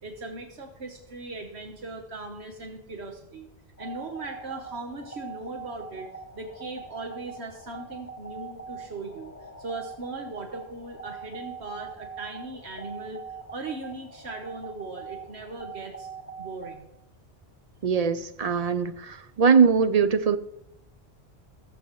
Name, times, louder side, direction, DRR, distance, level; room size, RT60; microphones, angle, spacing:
voice 1, 0.0-3.5 3.8-6.1 6.3-13.2 13.5-16.1 16.4-16.9, right 3 dB, 75° right, 3 dB, 1.5 m, -39 dB
sound 1, 3.8-16.7, right 4 dB, 15° left, 1.0 m, -42 dB
voice 2, 17.8-20.4, right 6 dB, 45° right, 11 dB, 0.6 m, -21 dB
20.0 x 7.8 x 3.1 m, 0.85 s
omnidirectional pair, 1.1 m